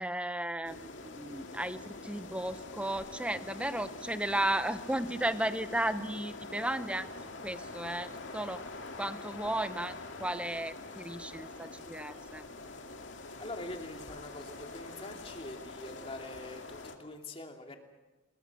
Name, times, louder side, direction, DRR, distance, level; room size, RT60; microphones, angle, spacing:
voice 1, 0.0-7.1 7.4-8.7 9.0-12.4, right 1 dB, 5° right, 12 dB, 0.8 m, -34 dB
sound 1, 0.6-17.0, left 3 dB, 65° left, 2.4 m, -45 dB
voice 2, 13.4-17.8, left 2 dB, 30° left, 3 dB, 2.6 m, -44 dB
26.5 x 22.0 x 6.0 m, 1.2 s
head